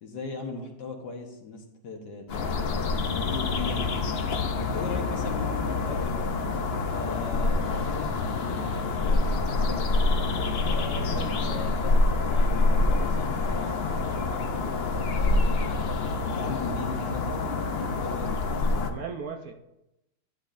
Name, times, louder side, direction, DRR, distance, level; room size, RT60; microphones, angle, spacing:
voice 1, 0.0-6.3 6.8-9.8 10.6-15.5 16.0-18.3, left 4 dB, 70° left, 2 dB, 1.9 m, -39 dB
sound 1, 2.3-18.9, left 3 dB, 55° left, 0.7 m, -26 dB
voice 2, 10.9-11.7 18.8-19.5, right 5 dB, 60° right, 4 dB, 1.1 m, -38 dB
11.5 x 10.5 x 2.6 m, 0.90 s
omnidirectional pair, 2.0 m